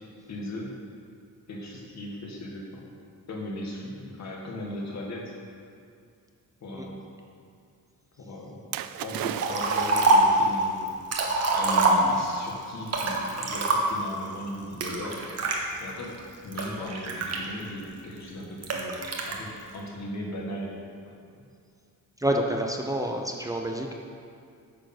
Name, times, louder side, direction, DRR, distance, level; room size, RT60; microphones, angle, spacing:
voice 1, 0.3-0.7 1.5-2.9 3.3-5.3 6.6-7.1 8.2-8.7 9.0-10.9 11.5-15.5 15.8-16.2 16.4-20.7 21.0-21.2, left 1 dB, 50° left, -2 dB, 2.0 m, -37 dB
Splash splatter, 8.7-10.5 11.5-11.6, right 11 dB, 85° right, 0.5 m, -35 dB
Liquid, 9.4-10.4 10.9-12.4 12.9-14.1 14.8-15.6 16.2-17.8 18.6-19.3, right 3 dB, 45° right, 1.3 m, -25 dB
voice 2, 22.2-23.9, right 1 dB, 10° right, 1 dB, 0.6 m, -28 dB
9.8 x 6.6 x 6.1 m, 2.4 s
wide cardioid pair, 160°, 34 cm